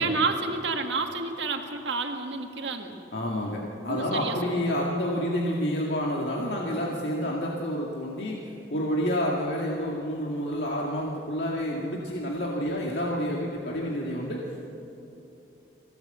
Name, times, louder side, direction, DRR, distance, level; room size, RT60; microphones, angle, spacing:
voice 1, 0.0-3.0 3.8-4.7, right 4 dB, 80° right, 4 dB, 1.8 m, -30 dB
voice 2, 3.1-14.6, equal, 65° left, -3 dB, 2.1 m, -29 dB
23.5 x 16.5 x 7.9 m, 3.0 s
head